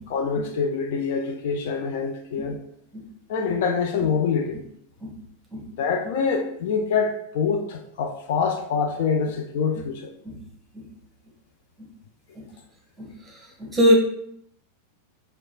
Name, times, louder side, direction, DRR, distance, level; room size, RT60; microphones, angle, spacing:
voice 1, 0.1-2.6 3.3-4.6 5.8-10.1, left 5 dB, 50° left, 4 dB, 0.4 m, -25 dB
voice 2, 13.0-13.9, equal, 10° right, 0 dB, 1.1 m, -23 dB
4.6 x 2.3 x 4.0 m, 0.72 s
figure-of-eight pair, 90°, 0 cm